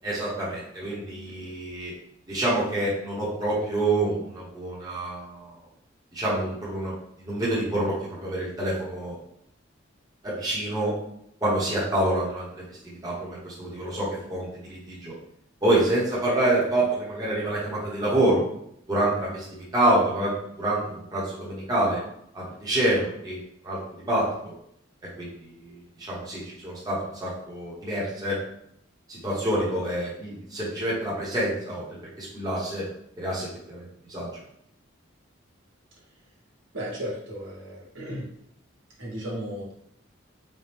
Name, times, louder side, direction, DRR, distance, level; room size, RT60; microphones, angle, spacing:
voice 1, 0.0-1.9 2.3-5.5 6.1-6.9 7.2-9.1 10.2-10.9 11.4-15.1 15.6-18.4 18.9-22.0 22.3-23.4 23.6-24.3 25.2-28.4 29.1-31.8 32.2-32.8 33.2-34.3, right 1 dB, 20° right, -7 dB, 1.0 m, -27 dB
voice 2, 36.7-38.2 39.0-39.7, equal, 70° right, -4 dB, 1.3 m, -35 dB
4.3 x 2.2 x 3.4 m, 0.73 s
head